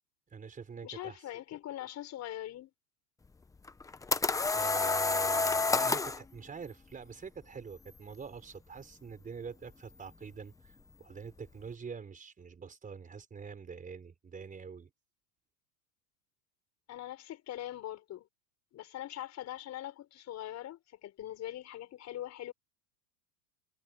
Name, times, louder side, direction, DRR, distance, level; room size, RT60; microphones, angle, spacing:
voice 1, 0.3-1.3 4.5-14.9, right 6 dB, 15° right, 5.0 m, -45 dB
voice 2, 0.8-2.7 16.9-18.3 18.7-22.5, left 13 dB, 35° left, 5.5 m, -42 dB
sound 1, 3.7-6.2, left 3 dB, 5° left, 0.8 m, -29 dB
supercardioid pair, 135°, 48 cm